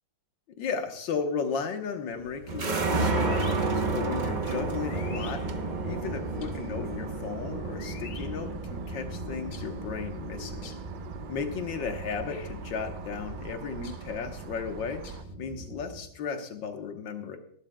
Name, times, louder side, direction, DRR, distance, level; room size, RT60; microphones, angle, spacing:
voice 1, 0.6-5.4 5.8-10.7 11.3-15.0 15.4-17.4, left 5 dB, 75° left, 5 dB, 1.9 m, -35 dB
sound 1, 2.1-15.4, left 6 dB, 55° left, 1.0 m, -51 dB
sound 2, 2.5-16.0, right 3 dB, 40° right, 0.6 m, -33 dB
sound 3, 3.1-15.2, right 7 dB, 75° right, 1.4 m, -44 dB
19.0 x 11.5 x 2.3 m, 0.68 s
omnidirectional pair, 2.0 m